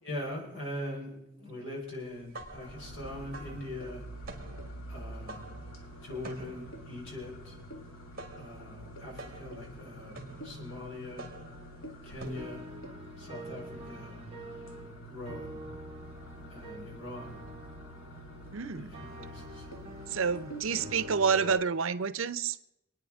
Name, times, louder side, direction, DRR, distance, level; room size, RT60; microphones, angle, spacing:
voice 1, 0.0-4.0 4.9-5.6 6.0-7.5 8.4-11.3 12.0-12.6 13.2-14.2 15.1-15.6 16.5-17.5 18.7-19.7 20.7-20.8, left 1 dB, 70° left, 4.4 m, -42 dB
sound 1, 2.1-12.8, right 2 dB, 45° right, 2.0 m, -48 dB
sound 2, 2.6-21.1, equal, 85° left, 1.8 m, -47 dB
sound 3, 12.2-21.6, right 1 dB, 30° right, 2.1 m, -46 dB
voice 2, 18.5-18.9 20.1-22.6, right 6 dB, 85° right, 0.7 m, -29 dB
28.0 x 9.4 x 3.6 m
head